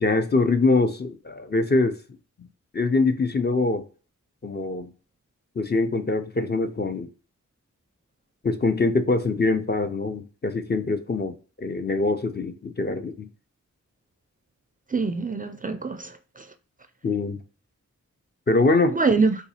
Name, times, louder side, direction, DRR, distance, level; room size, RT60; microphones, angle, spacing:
voice 1, 0.0-2.0 2.4-2.5 2.7-3.8 4.4-4.9 5.6-7.1 8.4-13.3 17.0-17.4 18.5-19.0, left 3 dB, 35° left, 0.5 m, -23 dB
voice 2, 14.9-16.5 18.9-19.3, right 4 dB, 25° right, 0.4 m, -24 dB
3.8 x 2.3 x 2.7 m
cardioid pair, 50°, 31 cm